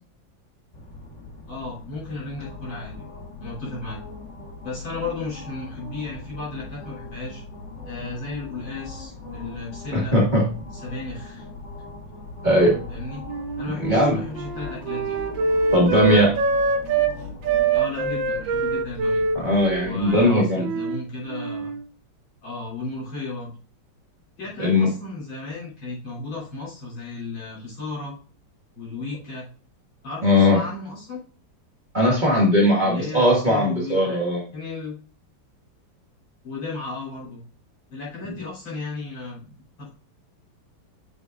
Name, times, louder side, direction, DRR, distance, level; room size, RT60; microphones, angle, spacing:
sound 1, 0.7-20.2, left 3 dB, 40° left, 1.7 m, -40 dB
voice 1, 1.5-4.0 4.6-7.4 7.8-10.2 10.7-11.5 12.9-13.2 13.6-15.2 16.0-16.3 17.7-19.2 19.8-21.7 22.4-23.5 24.4-28.1 28.8-29.5 30.0-31.2 32.8-34.2 34.5-34.9 36.4-37.4 37.9-39.5 39.8-39.9, left 3 dB, 70° left, -7 dB, 4.7 m, -34 dB
voice 2, 9.9-10.4 12.4-12.8 13.8-14.2 15.7-16.3 19.3-20.7 24.6-24.9 30.2-30.6 31.9-34.4, left 1 dB, 25° right, -4 dB, 1.9 m, -19 dB
Wind instrument woodwind instrument, 13.3-17.1 17.4-21.0 21.3-21.8, right 4 dB, 75° right, 1.5 m, -25 dB
7.9 x 6.6 x 2.5 m, 0.40 s
omnidirectional pair, 2.1 m